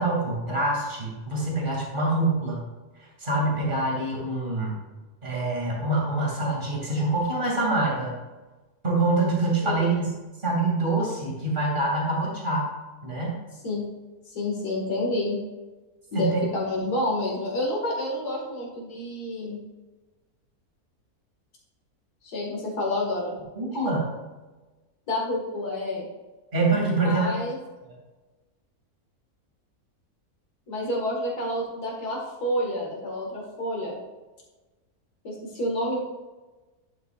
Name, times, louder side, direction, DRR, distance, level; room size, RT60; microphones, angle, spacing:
voice 1, 0.0-2.6 3.2-4.7 5.2-8.1 8.8-10.1 10.4-12.7 13.0-13.4 16.1-16.4 23.6-24.1 26.5-27.3, right 2 dB, 30° right, -3 dB, 2.7 m, -25 dB
voice 2, 9.6-10.0 13.6-13.8 14.3-15.4 16.1-19.6 22.2-23.4 25.1-26.1 26.9-27.6 30.7-34.0 35.2-36.0, left 1 dB, 90° left, -2 dB, 2.4 m, -29 dB
11.5 x 8.6 x 2.5 m, 1.2 s
omnidirectional pair, 1.6 m